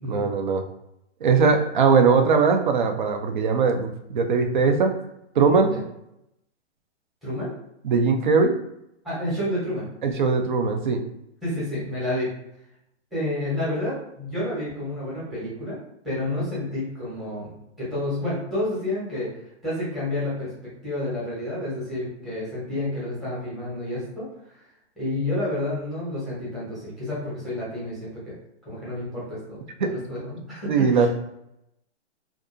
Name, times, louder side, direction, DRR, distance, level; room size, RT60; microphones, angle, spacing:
voice 1, 0.1-0.6 1.2-4.9 5.4-5.7 7.8-8.5 10.0-11.0 29.8-29.9 30.7-31.1, right 5 dB, 45° right, 5 dB, 0.4 m, -20 dB
voice 2, 7.2-7.5 9.0-9.9 11.4-12.3 13.1-15.8 16.0-19.3 19.6-24.3 24.5-24.6 25.0-28.4 28.6-31.1, left 1 dB, ahead, -10 dB, 0.8 m, -30 dB
2.6 x 2.3 x 2.5 m, 0.81 s
hypercardioid pair, 150°, 36 cm